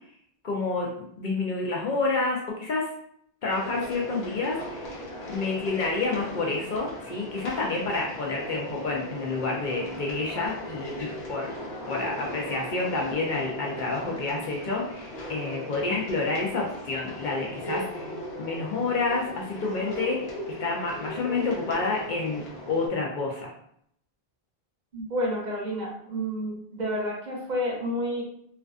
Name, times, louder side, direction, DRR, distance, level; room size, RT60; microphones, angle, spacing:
voice 1, 0.4-2.9 3.4-5.0 5.3-11.5 11.9-18.1 18.4-20.3 20.6-22.4 22.7-23.5, left 3 dB, 60° left, -2 dB, 0.6 m, -29 dB
sound 1, 3.5-22.9, equal, 85° left, 1.0 m, -38 dB
voice 2, 24.9-28.2, equal, 50° right, -3 dB, 0.7 m, -30 dB
2.4 x 2.3 x 2.3 m, 0.68 s
omnidirectional pair, 1.0 m